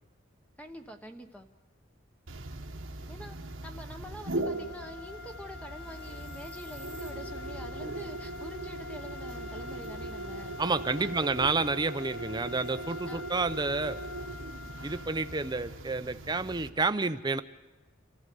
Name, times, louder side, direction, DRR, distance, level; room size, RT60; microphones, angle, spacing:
voice 1, 0.6-1.5 3.1-10.6 11.0-11.1 13.1-13.2, equal, 5° left, 5 dB, 1.1 m, -46 dB
sound 1, 2.3-16.7, right 2 dB, 90° right, 1.5 m, -39 dB
sound 2, 4.3-15.8, left 6 dB, 60° left, 0.9 m, -48 dB
voice 2, 10.6-14.0 14.8-17.4, right 3 dB, 20° right, 11 dB, 0.6 m, -30 dB
27.5 x 14.5 x 6.8 m, 1.1 s
head